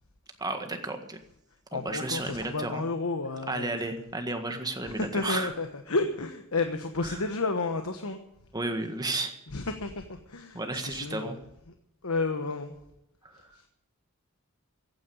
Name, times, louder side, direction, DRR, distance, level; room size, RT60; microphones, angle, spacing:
voice 1, 0.4-1.2 1.7-2.8 3.5-5.5 7.1-7.2 8.5-9.3 10.5-11.4 13.3-13.5, right 2 dB, 20° right, 6 dB, 1.7 m, -32 dB
voice 2, 1.7-3.9 4.8-8.2 9.5-11.4 12.0-12.7 13.3-13.7, left 3 dB, 75° left, 6 dB, 1.2 m, -32 dB
15.0 x 9.6 x 8.7 m, 0.82 s
head